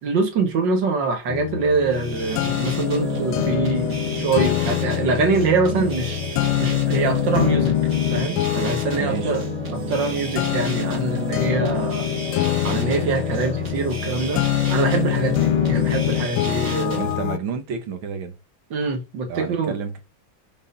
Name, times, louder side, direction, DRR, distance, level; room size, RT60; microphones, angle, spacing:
voice 1, 0.0-6.2 6.6-7.8 8.1-9.4 9.7-12.1 12.6-14.4 14.7-17.1 18.7-19.8, right 4 dB, 65° right, 2.0 m, -24 dB
sound 1, 1.3-17.4, left 14 dB, 85° left, 1.4 m, -24 dB
sound 2, 1.8-17.2, right 3 dB, 35° right, 2.2 m, -32 dB
voice 2, 9.0-9.4 16.9-18.3 19.3-20.0, right 6 dB, 85° right, 2.0 m, -30 dB
5.4 x 4.6 x 5.4 m
omnidirectional pair, 2.2 m